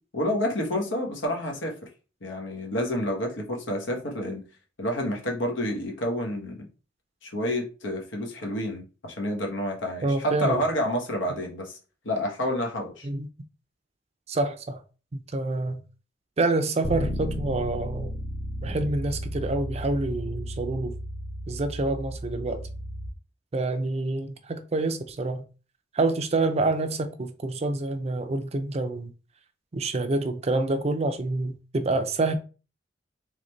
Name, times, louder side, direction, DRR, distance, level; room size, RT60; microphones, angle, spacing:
voice 1, 0.1-1.8 2.2-4.4 4.8-6.7 7.2-11.7 12.0-13.1, left 1 dB, 80° left, 1.3 m, -29 dB
voice 2, 10.0-10.6 13.0-13.3 14.3-14.8 15.1-15.8 16.4-18.1 18.6-20.9 21.5-22.6 23.5-25.4 25.9-29.1 29.7-32.3, right 2 dB, 35° right, 0.5 m, -27 dB
Bass guitar, 16.8-23.1, equal, 20° left, 0.6 m, -34 dB
3.9 x 3.3 x 3.2 m
head